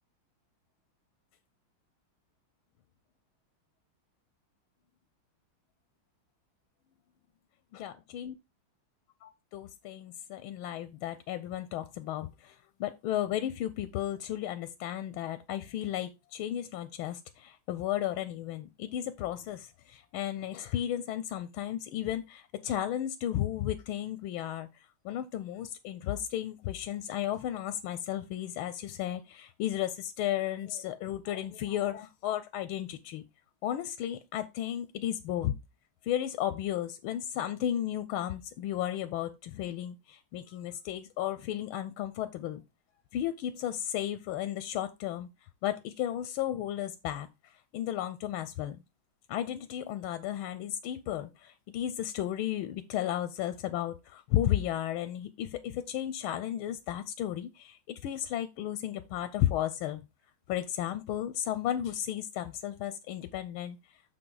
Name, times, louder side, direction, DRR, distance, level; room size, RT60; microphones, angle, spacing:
voice 1, 7.7-8.3 9.2-24.7 25.0-33.2 33.6-35.5 36.0-42.6 43.1-45.3 45.6-47.3 47.7-48.8 49.3-60.0 60.5-63.8, left 12 dB, 85° left, 1.5 m, -34 dB
6.6 x 6.0 x 3.8 m
omnidirectional pair, 2.3 m